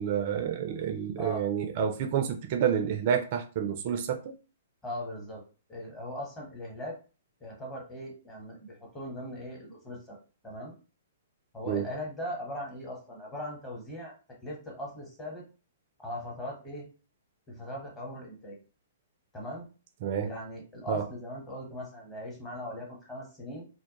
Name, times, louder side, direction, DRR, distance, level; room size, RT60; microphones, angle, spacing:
voice 1, 0.0-4.3 11.7-11.8 20.0-20.3 20.9-21.0, right 8 dB, 50° right, 0.4 m, -29 dB
voice 2, 1.2-1.5 4.8-5.4 5.7-7.0 7.4-10.2 10.4-10.7 11.5-14.1 14.4-15.4 16.0-16.9 17.5-18.6 19.3-19.6 20.2-23.6, equal, 15° left, 1.1 m, -39 dB
2.2 x 2.1 x 2.8 m
hypercardioid pair, 120°, 0 cm